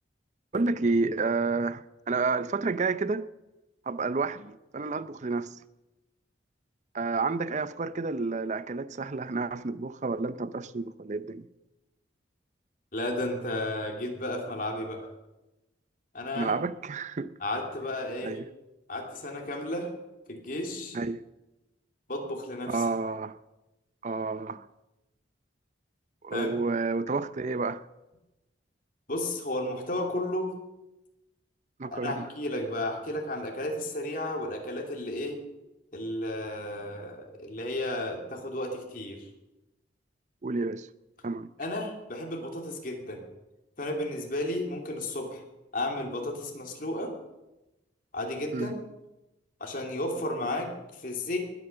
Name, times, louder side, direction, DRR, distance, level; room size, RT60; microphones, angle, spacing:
voice 1, 0.5-3.3 3.9-5.6 6.9-11.5 16.4-17.3 18.2-18.4 20.9-21.2 22.7-23.4 24.0-24.6 26.2-27.8 31.8-32.3 40.4-40.9 41.2-41.5 48.5-48.8, right 3 dB, 40° right, 0.5 m, -30 dB
voice 2, 12.9-15.1 16.1-16.5 17.4-18.4 18.9-19.9 20.3-21.0 22.1-22.8 26.3-26.6 29.1-30.5 31.9-35.4 35.9-39.3 41.6-43.2 43.8-45.4 45.7-47.1 48.1-48.8 49.6-51.4, left 1 dB, 50° left, 3.0 m, -33 dB
20.5 x 9.1 x 6.8 m
head